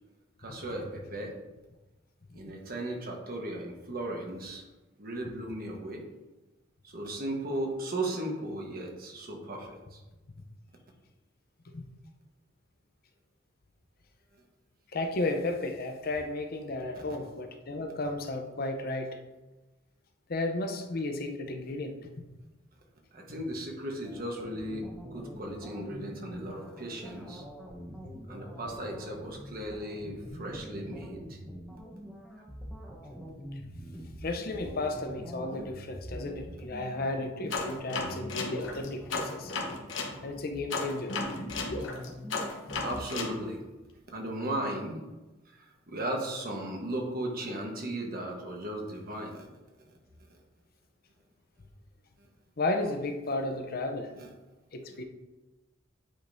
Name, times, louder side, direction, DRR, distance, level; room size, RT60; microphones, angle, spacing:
voice 1, 0.4-1.3 2.3-4.6 5.0-6.0 6.8-10.0 23.1-27.4 28.3-31.4 33.9-34.0 42.8-43.6 44.1-45.0 45.5-49.5 49.9-50.0 52.2-52.3 54.2-54.3, right 1 dB, 50° right, 1 dB, 1.2 m, -36 dB
voice 2, 14.9-19.2 20.3-22.3 34.2-39.5 40.2-41.1 52.6-54.1 54.7-55.0, left 2 dB, 50° left, 5 dB, 0.7 m, -33 dB
sound 1, 24.0-43.0, equal, ahead, 0.9 m, -45 dB
sound 2, 37.5-40.1 40.7-43.3, left 3 dB, 70° left, 1.1 m, -34 dB
8.8 x 5.2 x 2.7 m, 1.1 s
head